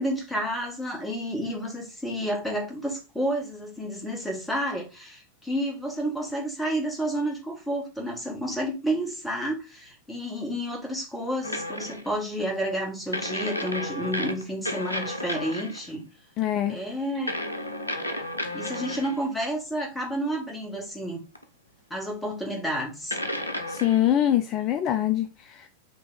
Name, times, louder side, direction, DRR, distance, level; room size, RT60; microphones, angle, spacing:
voice 1, 0.0-16.0 16.7-17.4 18.5-21.2 21.9-23.2, equal, 5° left, 1.6 m, -30 dB
sound 1, 11.4-12.1 13.1-15.9 17.3-19.2 21.4-21.5 23.1-24.1, left 1 dB, 85° left, 0.6 m, -32 dB
voice 2, 16.4-16.8 23.7-25.7, left 11 dB, 35° left, 0.3 m, -24 dB
4.1 x 2.8 x 4.1 m
figure-of-eight pair, 90°, 0 cm